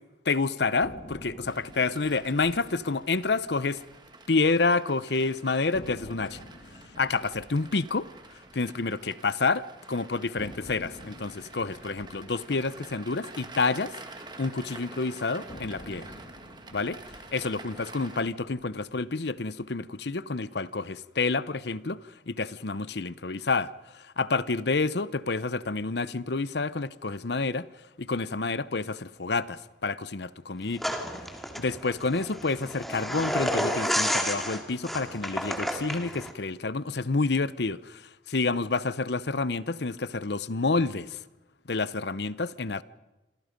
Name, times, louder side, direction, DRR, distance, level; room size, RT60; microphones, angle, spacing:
voice 1, 0.3-3.8 4.3-6.4 7.0-8.1 8.5-13.9 14.4-16.1 16.7-17.0 17.3-27.7 28.0-30.9 31.6-41.2 41.7-42.8, left 3 dB, 60° left, 0.8 m, -29 dB
sound 1, 0.8-4.9 5.2-5.3 5.7-9.8 10.4-14.7 15.5-19.8, left 1 dB, 40° left, 2.2 m, -49 dB
sound 2, 1.5-18.2, right 3 dB, 25° right, 2.1 m, -48 dB
sound 3, 30.8-36.3, equal, ahead, 2.5 m, -31 dB
27.0 x 27.0 x 5.3 m
head